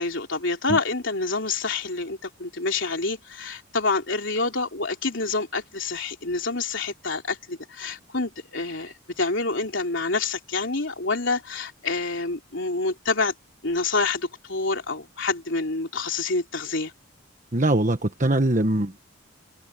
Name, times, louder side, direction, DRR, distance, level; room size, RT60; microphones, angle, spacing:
voice 1, 0.0-13.3 13.6-16.9, left 3 dB, 60° left, 3.7 m, -27 dB
voice 2, 17.5-19.0, right 1 dB, 35° right, 1.3 m, -22 dB
head